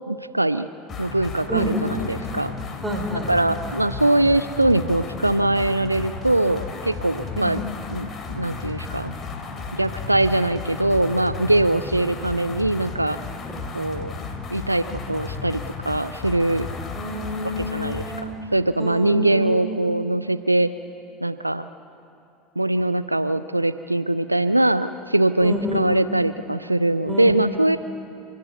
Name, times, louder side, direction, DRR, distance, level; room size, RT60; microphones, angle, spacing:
voice 1, 0.1-0.7 1.0-2.5 3.3-7.6 7.9-8.1 8.3-9.1 9.7-13.2 13.7-14.1 14.5-16.7 17.6-18.0 18.5-20.7 21.2-21.7 22.6-27.8, right 1 dB, 90° right, 13 dB, 0.4 m, -22 dB
sound 1, 0.9-18.3, left 4 dB, 30° left, 2.4 m, -34 dB
voice 2, 1.5-2.0 2.8-3.3 7.3-7.6 11.7-11.9 13.5-13.7 16.9-18.4 18.8-19.9 25.4-26.0 27.1-27.3, equal, 10° right, 3 dB, 4.1 m, -29 dB
29.5 x 11.5 x 8.1 m, 2.6 s
figure-of-eight pair, 75°, 0 cm